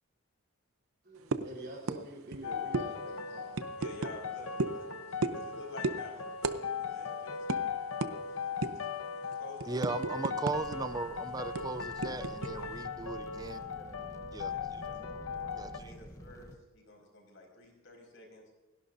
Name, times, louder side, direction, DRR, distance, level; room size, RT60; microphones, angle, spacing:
voice 1, 1.0-3.6, right 1 dB, 45° right, -3 dB, 3.6 m, -46 dB
sound 1, 1.3-1.5 1.9-2.0 2.3-2.4 2.7-2.9 3.5-4.1 4.6-4.8 5.2-5.5 5.8-6.0 6.4-6.6 6.9-7.0 7.5-7.6 8.0-8.1 8.6-8.9 9.3-10.8 11.0-11.1 11.6-12.5, right 3 dB, 85° right, 0.7 m, -33 dB
sound 2, 2.4-15.8, left 5 dB, 80° left, 1.0 m, -39 dB
voice 2, 3.8-7.4 9.3-10.9 12.6-12.7 13.0-13.9 14.5-18.4, left 2 dB, 60° left, 1 dB, 5.1 m, -51 dB
voice 3, 9.7-13.6 14.3-14.5 15.6-15.7, right 3 dB, 20° right, 11 dB, 0.4 m, -37 dB
sound 3, 10.5-16.5, equal, 15° left, 1.0 m, -50 dB
29.0 x 11.5 x 2.7 m, 1.1 s
head